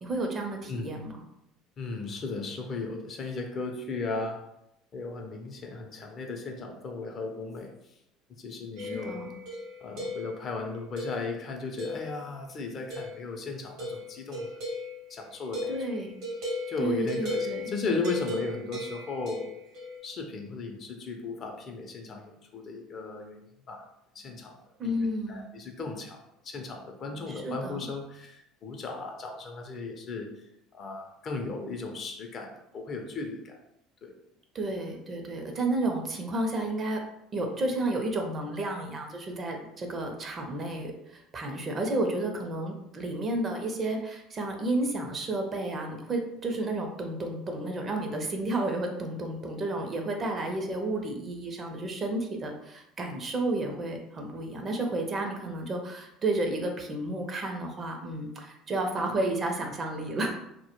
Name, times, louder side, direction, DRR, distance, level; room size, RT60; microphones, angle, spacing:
voice 1, 0.0-1.2 8.8-9.3 15.7-16.1 16.8-17.7 24.8-25.5 27.3-27.8 34.5-37.0 37.3-60.3, right 2 dB, 35° right, 3 dB, 0.5 m, -31 dB
voice 2, 1.8-4.4 4.9-7.7 8.3-9.2 9.8-14.6 15.1-15.7 16.7-19.5 20.0-23.4 23.7-23.9 24.1-24.5 24.8-30.3 30.7-33.6 34.0-34.1, left 3 dB, 45° left, 3 dB, 0.5 m, -36 dB
sound 1, 8.8-10.5 11.0-11.4 11.8-12.4 12.9-13.3 13.8-20.0, left 2 dB, 60° right, 0.8 m, -37 dB
2.1 x 2.1 x 2.9 m, 0.82 s
hypercardioid pair, 70°, 0 cm